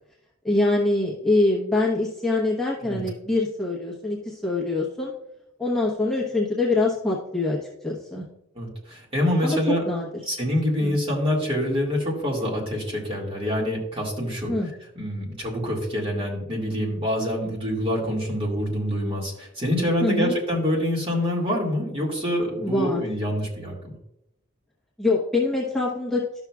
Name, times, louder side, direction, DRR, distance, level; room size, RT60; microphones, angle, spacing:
voice 1, 0.4-5.1 5.6-7.6 7.8-8.2 9.4-9.6 9.9-10.1 10.8-11.0 14.5-14.7 20.0-20.3 22.6-23.0 25.0-26.4, left 2 dB, ahead, -5 dB, 0.9 m, -24 dB
voice 2, 8.6-9.8 10.3-14.5 15.0-24.0, equal, 25° right, -2 dB, 2.0 m, -26 dB
12.0 x 6.1 x 2.3 m, 0.86 s
head